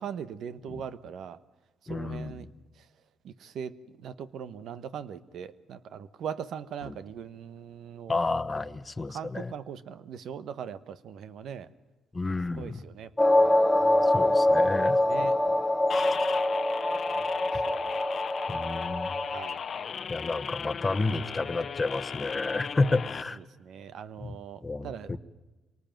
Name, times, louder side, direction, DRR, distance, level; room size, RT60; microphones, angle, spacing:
voice 1, 0.0-1.4 1.9-2.5 3.2-8.2 9.1-11.7 12.6-14.1 15.1-15.3 17.1-17.9 19.3-19.6 23.6-25.2, right 8 dB, 70° right, 13 dB, 1.2 m, -40 dB
voice 2, 1.9-2.5 6.8-7.0 8.1-9.5 12.1-12.8 14.0-15.3 15.9-16.0 18.5-19.1 20.1-23.4 24.2-24.4 24.6-25.2, left 3 dB, 20° left, 9 dB, 1.2 m, -31 dB
sound 1, 13.2-19.4, left 1 dB, 5° left, 1.4 m, -24 dB
sound 2, 15.9-23.2, left 7 dB, 50° left, 0.9 m, -36 dB
26.0 x 19.0 x 9.1 m, 1.2 s
cardioid pair, 90°, 0 cm